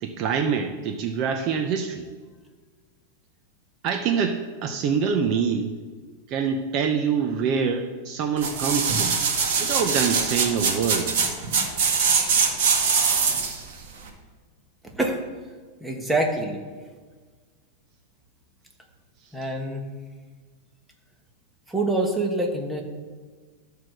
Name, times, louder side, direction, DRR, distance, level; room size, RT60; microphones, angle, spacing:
voice 1, 0.0-2.1 3.8-5.7 6.3-9.2 9.6-11.1 19.2-19.3, right 6 dB, 35° right, 5 dB, 0.7 m, -25 dB
sound 1, 8.4-13.6 14.1-14.2, right 5 dB, 60° right, 2.0 m, -22 dB
voice 2, 15.8-16.6 19.3-19.8 21.7-22.8, right 2 dB, 5° right, 1 dB, 1.2 m, -25 dB
13.0 x 4.7 x 6.5 m, 1.5 s
supercardioid pair, 155°, 0 cm